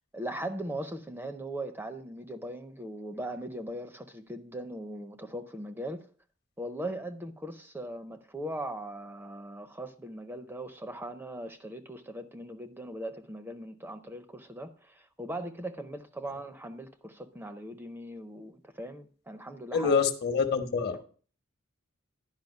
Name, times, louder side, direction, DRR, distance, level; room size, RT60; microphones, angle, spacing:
voice 1, 0.1-6.1 6.6-20.0 20.9-21.0, right 1 dB, 10° right, 0.5 m, -39 dB
voice 2, 19.7-21.0, left 5 dB, 50° left, 1.0 m, -26 dB
10.5 x 5.2 x 5.3 m
head